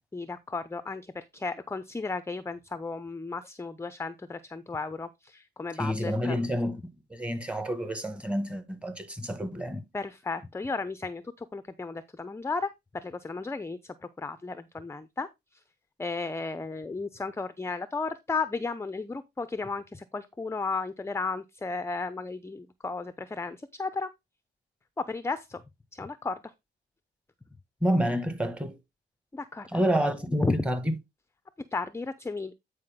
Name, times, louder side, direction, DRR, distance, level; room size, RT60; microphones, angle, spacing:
voice 1, 0.1-6.5 9.9-15.3 16.0-24.1 25.0-25.6 25.9-26.4 29.3-29.8 30.4-30.6 31.7-32.5, left 3 dB, 15° left, 0.7 m, -34 dB
voice 2, 5.8-6.8 7.1-9.8 27.8-28.8 29.7-30.9, equal, 5° right, 1.8 m, -28 dB
9.5 x 5.0 x 3.7 m
cardioid pair, 90°, 20 cm